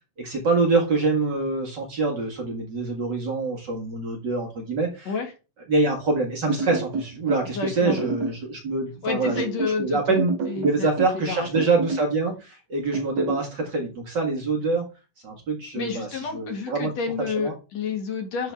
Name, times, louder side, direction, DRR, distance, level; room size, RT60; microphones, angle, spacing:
voice 1, 0.2-5.1 5.7-14.9 15.2-16.9 17.3-17.5, right 3 dB, 40° right, 2 dB, 1.7 m, -25 dB
sound 1, 6.5-7.5 7.9-8.4 9.2-9.8 10.2-11.2 11.5-12.1 12.9-13.5, right 3 dB, 85° right, 3.6 m, -28 dB
voice 2, 7.4-8.0 9.0-10.9 11.3-11.5 15.7-18.5, left 5 dB, 55° left, 3 dB, 2.8 m, -30 dB
11.5 x 4.0 x 3.4 m, 0.30 s
omnidirectional pair, 4.0 m